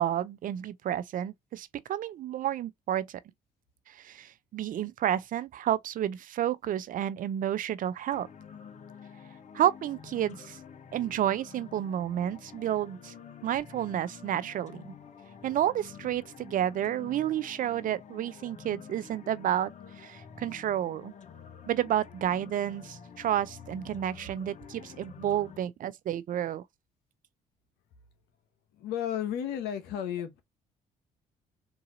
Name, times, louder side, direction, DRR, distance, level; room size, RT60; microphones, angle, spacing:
voice 1, 0.0-3.2 3.9-8.3 9.5-10.6 10.9-13.1 13.4-14.9 15.4-19.7 20.0-21.1 21.7-26.6, right 11 dB, 55° right, 0.5 m, -30 dB
sound 1, 8.1-25.6, left 7 dB, 45° left, 0.9 m, -49 dB
voice 2, 28.7-30.4, left 9 dB, 75° left, 1.1 m, -33 dB
3.8 x 2.7 x 3.9 m
supercardioid pair, 60°, 17 cm